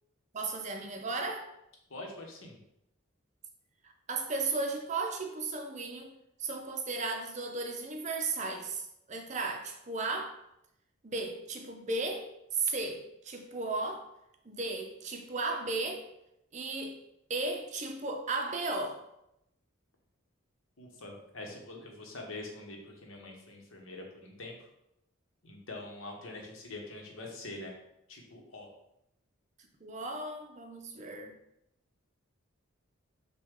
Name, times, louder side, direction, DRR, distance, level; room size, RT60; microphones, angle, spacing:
voice 1, 0.3-1.5 4.1-6.1 6.4-8.8 9.1-10.3 11.0-14.0 14.5-16.0 16.5-17.0 17.3-19.0 29.8-31.3, right 3 dB, 35° right, 4 dB, 0.5 m, -35 dB
voice 2, 1.9-2.6 20.8-24.7 25.4-27.7 28.1-28.7, left 2 dB, 70° left, 1 dB, 1.0 m, -44 dB
6.0 x 2.2 x 3.6 m, 0.81 s
head